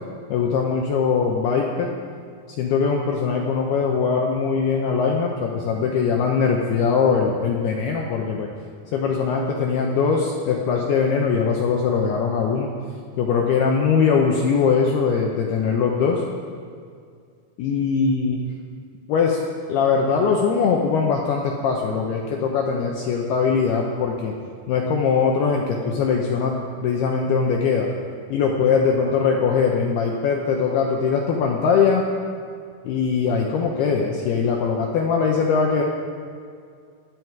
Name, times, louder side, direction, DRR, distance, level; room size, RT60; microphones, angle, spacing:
voice 1, 0.3-1.9 2.6-8.5 8.9-12.7 13.2-16.2 17.6-18.4 19.1-19.4 19.7-24.3 24.7-27.9 28.3-32.1 32.8-35.8, left 5 dB, 85° left, 0 dB, 2.2 m, -21 dB
26.0 x 9.7 x 4.6 m, 2.2 s
omnidirectional pair, 5.9 m